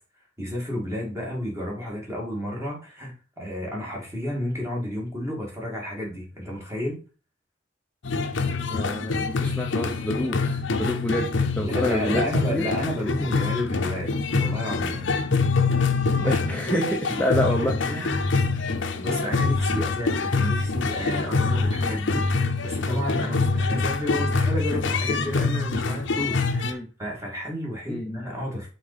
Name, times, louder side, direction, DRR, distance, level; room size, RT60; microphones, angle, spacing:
voice 1, 0.4-7.0 11.6-15.1 16.2-16.3 16.7-18.0 18.9-28.7, equal, 15° right, -2 dB, 2.5 m, -31 dB
sound 1, 8.0-26.7, left 4 dB, 70° left, 0.7 m, -25 dB
voice 2, 8.5-11.3 11.5-12.7 16.2-18.2 18.5-18.6 23.4-23.5 26.6-26.9 27.9-28.2, left 1 dB, 10° left, 0 dB, 0.7 m, -28 dB
5.8 x 4.0 x 5.1 m, 0.35 s
head